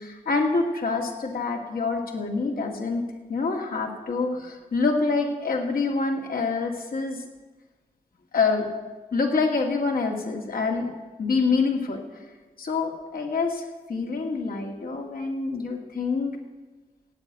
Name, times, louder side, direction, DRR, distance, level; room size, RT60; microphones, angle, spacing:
voice 1, 0.0-3.0 3.3-7.2 8.3-8.7 9.1-10.9 11.2-12.0 12.6-16.4, left 4 dB, 75° left, 2 dB, 2.1 m, -26 dB
16.0 x 9.1 x 8.0 m, 1.2 s
cardioid pair, 65°, 15 cm